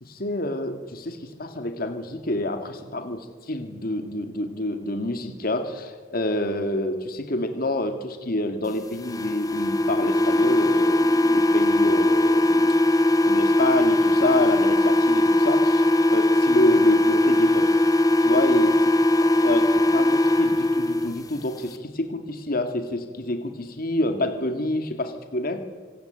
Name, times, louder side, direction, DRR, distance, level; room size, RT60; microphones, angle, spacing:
voice 1, 0.0-17.7 18.2-18.9 19.4-25.6, left 1 dB, 55° left, 6 dB, 2.1 m, -28 dB
sound 1, 9.0-21.1, left 1 dB, 20° left, 1.7 m, -20 dB
26.0 x 18.5 x 9.2 m, 1.5 s
head